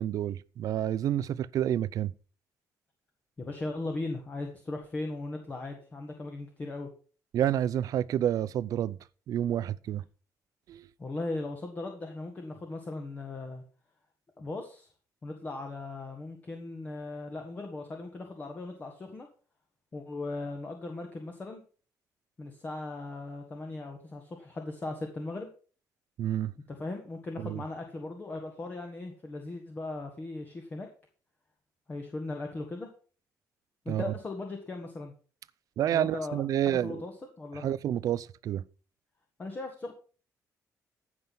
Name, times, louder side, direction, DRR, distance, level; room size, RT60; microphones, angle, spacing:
voice 1, 0.0-2.1 7.3-9.0 9.3-10.0 10.7-10.9 26.2-26.5 27.4-27.6 33.9-34.1 35.8-37.0 37.6-38.6, right 11 dB, 65° right, 0.5 m, -29 dB
voice 2, 3.4-6.9 11.0-13.6 14.4-14.9 15.2-19.3 19.9-21.6 22.4-25.5 26.7-30.9 31.9-32.9 33.9-35.1 35.9-37.6 39.4-39.9, left 2 dB, 25° left, 1.7 m, -38 dB
15.0 x 6.1 x 5.4 m
cardioid pair, 155°, 6 cm